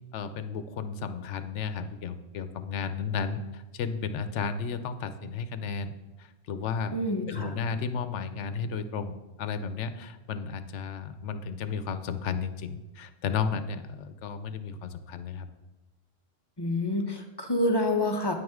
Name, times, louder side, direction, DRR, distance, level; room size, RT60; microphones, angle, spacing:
voice 1, 0.1-5.9 6.2-7.0 7.3-15.5, left 6 dB, 90° left, 11 dB, 1.0 m, -33 dB
voice 2, 6.9-7.5 16.6-18.3, left 1 dB, 25° left, 4 dB, 0.8 m, -27 dB
9.5 x 9.4 x 3.6 m, 1.1 s
omnidirectional pair, 1.2 m